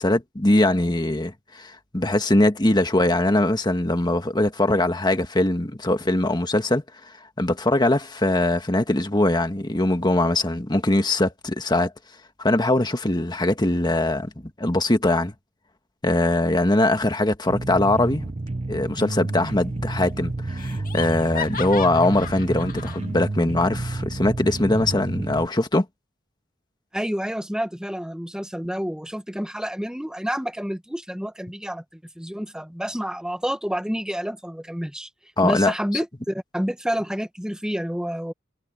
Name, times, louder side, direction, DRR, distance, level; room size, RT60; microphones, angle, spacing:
voice 1, 0.0-6.8 7.4-11.9 12.4-14.3 14.6-15.3 16.0-18.3 18.7-25.8 35.4-35.7, left 1 dB, 20° left, 1.5 m, -21 dB
sound 1, 17.5-25.5, right 2 dB, 30° right, 0.7 m, -30 dB
Laughter, 19.3-19.8 20.1-20.2 20.6-23.1, left 6 dB, 45° left, 2.3 m, -36 dB
voice 2, 26.9-35.1 35.4-38.3, equal, 5° right, 1.4 m, -29 dB
head